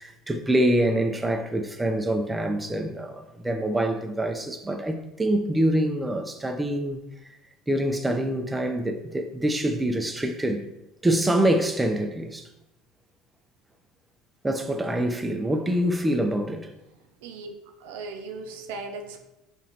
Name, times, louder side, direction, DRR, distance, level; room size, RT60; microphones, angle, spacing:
voice 1, 0.0-7.0 7.7-10.7 11.0-12.5 14.4-16.7, right 1 dB, 10° right, 0.4 m, -25 dB
voice 2, 17.2-17.5 17.8-19.2, right 3 dB, 80° right, 0.4 m, -37 dB
3.7 x 3.0 x 2.7 m
supercardioid pair, 90°, 0 cm